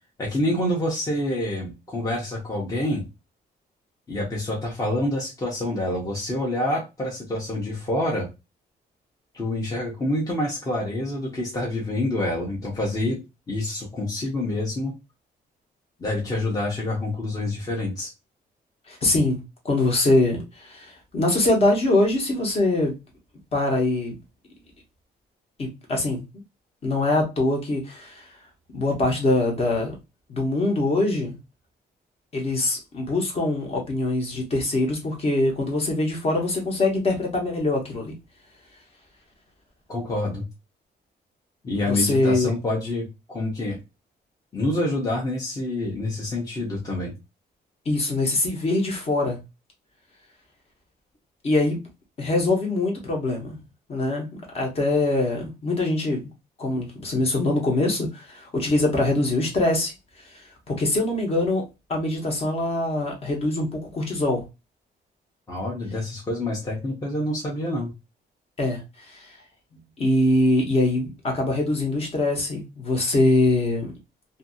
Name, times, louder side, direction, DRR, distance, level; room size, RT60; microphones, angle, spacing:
voice 1, 0.2-3.0 4.1-8.3 9.3-13.2 13.5-14.9 16.0-18.1 39.9-40.4 41.6-43.8 44.5-47.1 65.5-67.9, left 1 dB, 20° left, 0.7 m, -27 dB
voice 2, 18.9-22.9 23.5-24.2 25.6-26.2 26.8-28.3 28.7-29.9 30.3-31.4 32.3-38.1 41.8-42.5 47.8-49.4 51.4-51.8 52.2-53.6 53.9-54.3 54.5-56.2 56.6-59.9 60.2-61.6 61.9-64.4 68.6-69.4 70.0-73.9, left 2 dB, 35° left, 0.9 m, -23 dB
2.7 x 2.6 x 2.5 m
cardioid pair, 170°, 17 cm